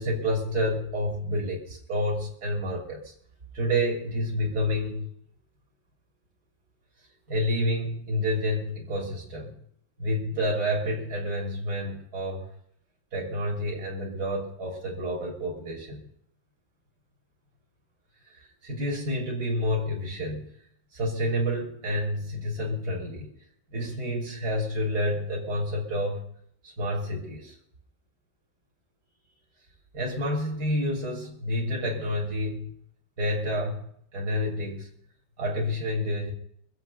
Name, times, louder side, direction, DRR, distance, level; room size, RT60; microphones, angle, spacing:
voice 1, 0.0-3.1 3.5-5.1 7.3-9.6 10.0-12.5 13.1-16.0 18.2-20.5 20.9-23.3 23.7-26.2 26.6-27.5 29.9-32.7 33.2-34.9 35.4-36.3, equal, 60° right, -2 dB, 3.7 m, -29 dB
24.5 x 8.2 x 5.6 m, 0.67 s
omnidirectional pair, 2.0 m